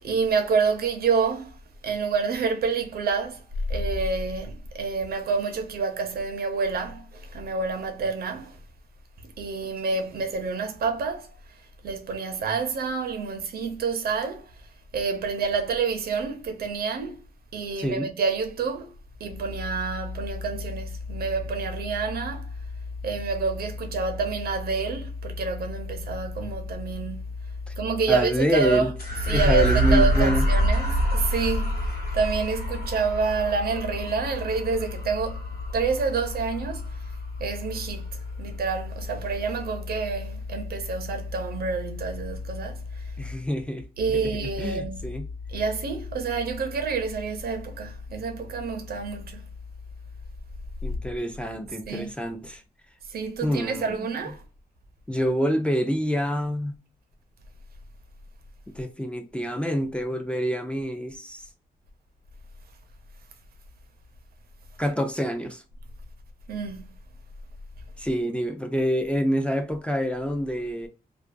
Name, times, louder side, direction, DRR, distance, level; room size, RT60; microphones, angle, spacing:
voice 1, 0.0-1.6 1.8-3.4 3.7-8.6 9.2-11.3 11.8-14.5 14.9-17.2 17.5-18.9 19.2-22.5 23.0-27.3 27.8-37.0 37.4-43.1 44.0-45.1 45.5-49.4 51.9-52.1 53.1-54.4 66.5-66.9, right 4 dB, 85° right, 0.6 m, -28 dB
voice 2, 17.8-18.1 27.7-27.8 28.1-28.9 29.3-30.5 43.2-43.8 44.4-45.3 50.8-52.6 53.4-54.1 55.1-56.8 58.7-61.4 64.8-65.6 68.0-70.9, equal, 5° left, 0.4 m, -27 dB
sound 1, 29.0-37.6, equal, 80° left, 1.2 m, -26 dB
2.4 x 2.2 x 2.5 m
wide cardioid pair, 105°, 16 cm